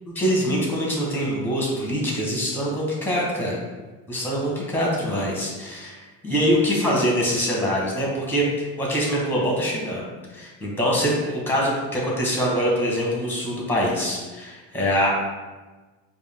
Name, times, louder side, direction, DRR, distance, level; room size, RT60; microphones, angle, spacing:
voice 1, 0.1-3.6 4.1-8.5 8.8-10.1 10.3-15.1, equal, 5° left, -3 dB, 1.2 m, -24 dB
4.6 x 2.4 x 3.5 m, 1.3 s
supercardioid pair, 120°, 36 cm